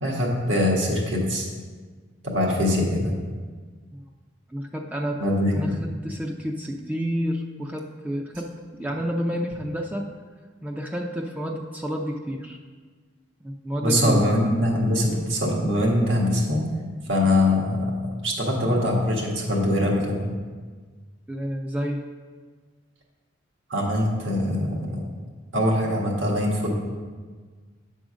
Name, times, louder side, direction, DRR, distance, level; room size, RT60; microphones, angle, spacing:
voice 1, 0.0-1.5 2.2-3.1 5.2-5.7 13.8-16.6 17.1-17.9 18.2-20.3 23.7-24.9 25.5-26.7, left 1 dB, 80° right, -2 dB, 1.6 m, -23 dB
voice 2, 4.5-5.2 5.5-8.5 8.8-10.1 10.6-12.6 13.4-14.4 21.3-22.0, equal, 10° right, 1 dB, 0.4 m, -30 dB
8.7 x 3.8 x 6.2 m, 1.5 s
head